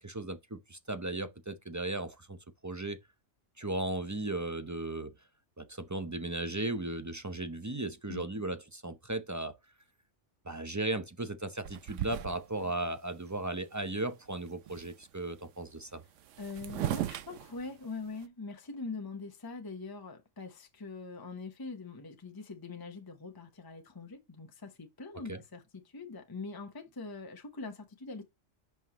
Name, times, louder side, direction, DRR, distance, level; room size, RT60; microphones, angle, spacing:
voice 1, 0.0-2.4 2.6-3.0 3.6-5.1 5.6-9.6 10.4-16.0 25.3-25.4, right 2 dB, 25° right, 0.4 m, -36 dB
voice 2, 8.1-8.4 16.4-28.2, left 4 dB, 20° left, 0.9 m, -43 dB
sound 1, 11.6-12.7 13.3-13.4 13.6-14.1 14.3-15.0 15.9-18.2, right 12 dB, 75° right, 0.9 m, -38 dB
6.1 x 5.7 x 2.9 m
omnidirectional pair, 1.3 m